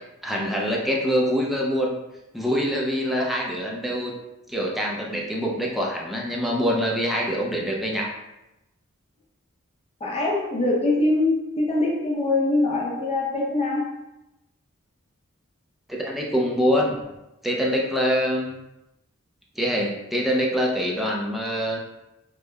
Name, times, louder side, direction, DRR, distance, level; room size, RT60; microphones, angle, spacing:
voice 1, 0.2-2.0 2.3-4.1 4.5-8.1 15.9-16.9 17.4-18.6 19.6-21.8, equal, ahead, -2 dB, 0.4 m, -24 dB
voice 2, 10.0-13.9, left 2 dB, 30° left, -3 dB, 0.7 m, -23 dB
4.9 x 2.1 x 2.2 m, 0.93 s
head